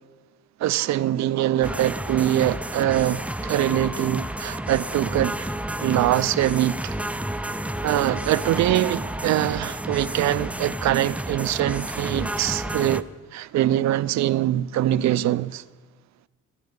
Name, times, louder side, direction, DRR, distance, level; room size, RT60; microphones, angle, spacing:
voice 1, 0.6-5.5 5.8-7.0 7.8-13.1 13.3-15.6, right 13 dB, 65° right, 0.5 m, -23 dB
sound 1, 1.6-13.0, right 1 dB, 5° right, 0.4 m, -31 dB
20.0 x 10.5 x 5.3 m
cardioid pair, 90°, 30 cm